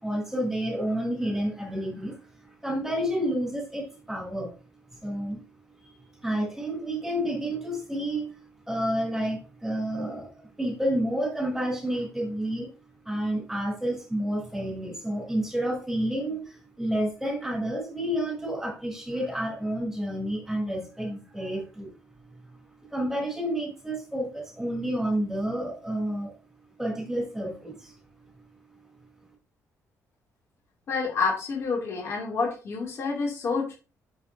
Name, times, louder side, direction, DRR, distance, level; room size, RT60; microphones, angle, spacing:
voice 1, 0.0-2.2 2.6-4.5 5.0-5.4 6.2-8.3 8.7-10.3 10.6-12.7 13.0-21.9 22.9-26.3 26.8-27.9, right 1 dB, 5° right, -1 dB, 4.5 m, -30 dB
voice 2, 30.9-33.7, left 4 dB, 45° left, -2 dB, 3.3 m, -28 dB
8.4 x 7.3 x 3.0 m, 0.33 s
cardioid pair, 150°, 6 cm